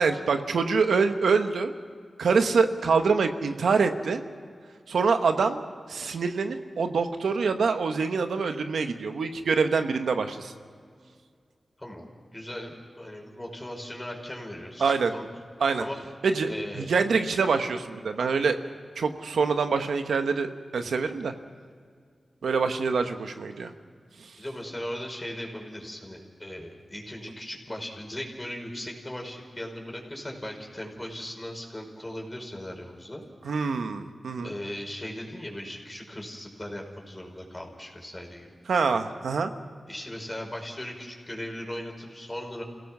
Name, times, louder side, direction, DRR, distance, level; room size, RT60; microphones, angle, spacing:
voice 1, 0.0-1.7 2.2-4.2 4.9-5.6 5.9-10.5 14.8-15.1 15.6-15.8 16.2-18.6 19.0-21.3 22.4-23.7 24.2-24.3 33.4-34.5 38.7-39.5, right 5 dB, 90° right, 7 dB, 1.2 m, -25 dB
voice 2, 11.8-15.3 15.8-16.0 16.5-16.9 24.4-33.2 34.4-38.5 39.9-42.6, left 1 dB, 20° left, 0 dB, 4.9 m, -38 dB
27.5 x 17.0 x 6.1 m, 2.1 s
cardioid pair, 55°, 0 cm